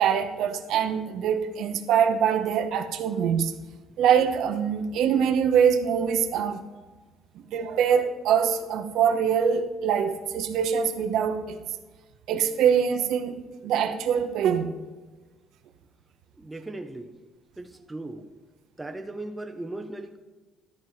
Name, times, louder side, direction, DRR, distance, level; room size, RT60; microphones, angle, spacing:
voice 1, 0.0-3.5 4.0-6.6 7.3-11.6 12.3-13.4 13.6-14.7, right 8 dB, 65° right, 7 dB, 0.8 m, -24 dB
voice 2, 16.4-17.1 17.6-18.3 18.8-20.2, right 2 dB, 10° right, 5 dB, 0.5 m, -37 dB
12.5 x 4.6 x 5.8 m, 1.3 s
cardioid pair, 165°, 0 cm